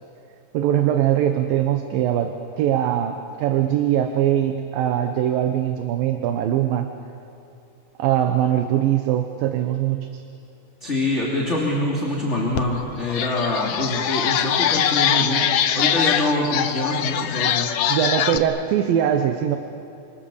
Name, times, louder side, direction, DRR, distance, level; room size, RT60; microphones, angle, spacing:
voice 1, 0.5-6.9 8.0-10.2 17.9-19.6, right 11 dB, 75° right, 7 dB, 2.7 m, -21 dB
voice 2, 10.8-15.5 15.7-17.7, left 1 dB, 20° left, -3 dB, 2.7 m, -24 dB
sound 1, 12.5-12.6 13.0-18.4, left 9 dB, 70° left, 1.7 m, -22 dB
29.5 x 26.0 x 7.1 m, 2.6 s
omnidirectional pair, 4.2 m